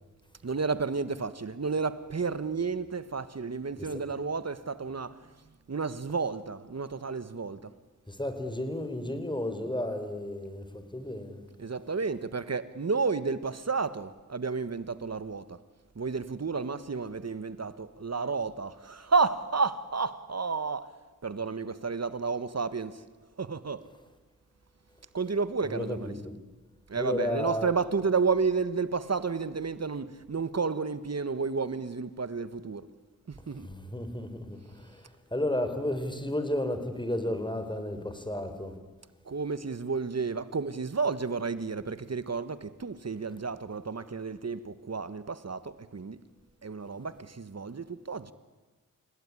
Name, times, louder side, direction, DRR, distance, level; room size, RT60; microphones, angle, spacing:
voice 1, 0.4-5.1 5.7-7.6 11.6-15.4 16.0-20.9 21.2-22.9 23.4-23.8 25.1-26.1 26.9-32.8 33.5-33.7 39.3-45.6 45.9-46.1 46.6-48.3, right 4 dB, 50° right, 1.5 m, -31 dB
voice 2, 8.1-11.4 25.6-26.3 26.9-27.7 33.6-35.0 35.3-38.7, left 1 dB, 15° left, 4.3 m, -33 dB
29.0 x 17.5 x 9.9 m
cardioid pair, 50°, 33 cm